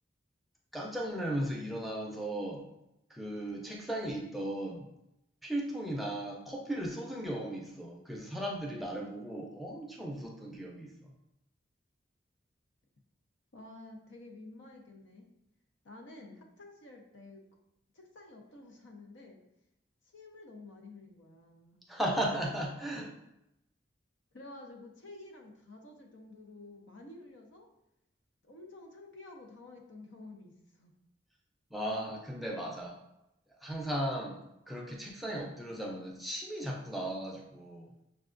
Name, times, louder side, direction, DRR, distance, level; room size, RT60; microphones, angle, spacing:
voice 1, 0.7-2.6 3.1-4.8 5.4-11.1 21.9-23.1 31.7-33.0 33.6-37.9, right 1 dB, ahead, -2 dB, 0.5 m, -36 dB
voice 2, 13.5-15.3 15.8-17.4 17.9-19.4 20.1-21.8 24.3-27.7 28.4-30.9, left 2 dB, 85° left, 1 dB, 0.7 m, -51 dB
6.3 x 2.3 x 2.5 m, 0.85 s
head